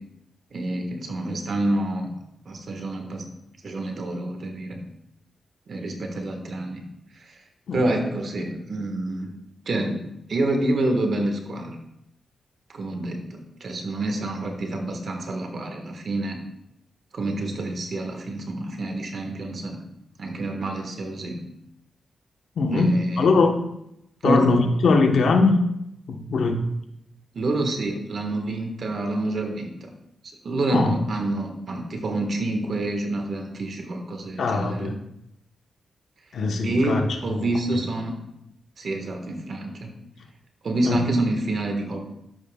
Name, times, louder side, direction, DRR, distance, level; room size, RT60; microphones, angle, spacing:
voice 1, 0.5-2.1 2.4-3.3 3.6-4.8 5.7-6.8 7.1-7.4 7.7-9.3 9.6-10.0 10.3-11.7 12.7-16.4 17.1-19.8 20.2-21.4 22.7-23.3 24.2-24.6 27.3-29.9 30.4-34.9 36.6-38.1 38.8-39.9 40.6-42.0, right 2 dB, 60° right, 3 dB, 1.4 m, -27 dB
voice 2, 22.6-23.6 24.2-25.6 26.1-26.7 30.7-30.9 34.4-34.9 36.3-37.0 37.4-37.5 40.8-41.0, left 3 dB, 75° left, 4 dB, 1.0 m, -21 dB
13.0 x 5.5 x 2.3 m, 0.81 s
cardioid pair, 80°, 0 cm